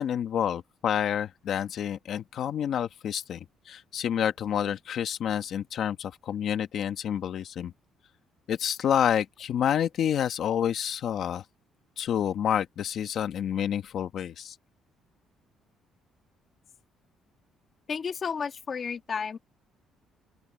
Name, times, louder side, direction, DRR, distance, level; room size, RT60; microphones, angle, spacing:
voice 1, 0.0-7.7 8.5-11.4 12.0-14.5, left 9 dB, 50° left, 1.3 m, -28 dB
voice 2, 17.9-19.4, left 6 dB, 30° left, 2.1 m, -32 dB
open air
cardioid pair, 170°, 0 cm